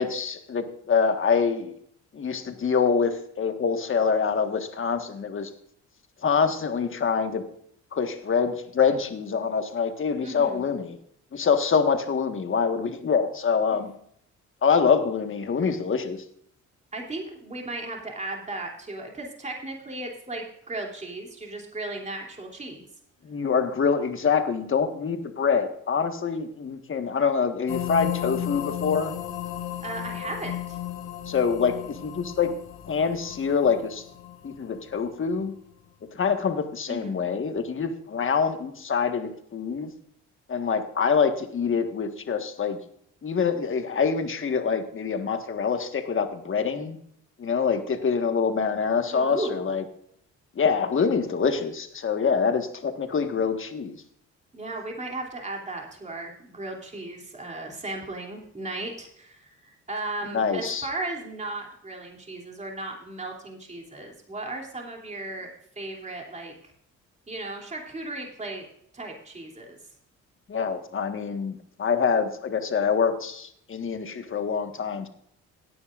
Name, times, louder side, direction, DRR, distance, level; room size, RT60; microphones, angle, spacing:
voice 1, 0.0-1.7 2.1-5.5 6.2-7.4 7.9-11.0 11.3-13.9 14.6-16.2 23.2-29.1 31.3-32.5 32.9-34.0 34.4-35.5 36.1-39.9 40.5-42.8 43.2-47.0 47.4-49.8 50.5-54.0 60.3-60.9 70.5-75.1, left 6 dB, 40° left, 7 dB, 1.6 m, -25 dB
voice 2, 10.2-10.6 13.7-13.8 16.9-22.8 29.8-30.8 36.9-37.3 49.1-49.6 54.5-65.5 65.8-66.5 67.3-68.6 68.9-69.8, right 2 dB, 25° right, 0 dB, 3.0 m, -36 dB
sound 1, 27.7-35.4, left 12 dB, 85° left, 1.8 m, -34 dB
17.5 x 9.6 x 2.5 m, 0.68 s
cardioid pair, 90°, 30 cm